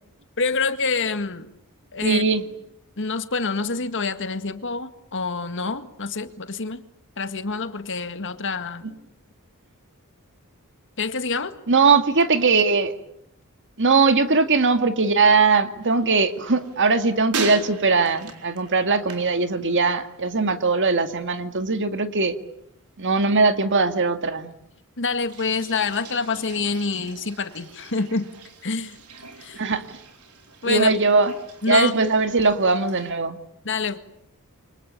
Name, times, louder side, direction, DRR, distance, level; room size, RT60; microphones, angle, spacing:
voice 1, 0.4-1.5 1.9-2.2 3.0-6.8 7.2-8.8 11.0-11.5 25.0-28.3 28.6-29.0 29.4-29.6 30.6-30.9 31.6-31.9 33.6-34.0, left 4 dB, 55° left, 10 dB, 1.9 m, -26 dB
voice 2, 2.0-2.5 11.7-12.9 13.8-22.4 23.0-24.5 29.6-30.0 30.6-31.3 31.7-33.4, right 4 dB, 55° right, 9 dB, 2.2 m, -20 dB
sound 1, 15.8-20.2 20.5-21.1 25.2-33.1, right 4 dB, 85° right, 4.3 m, -39 dB
28.0 x 24.5 x 8.5 m, 0.77 s
head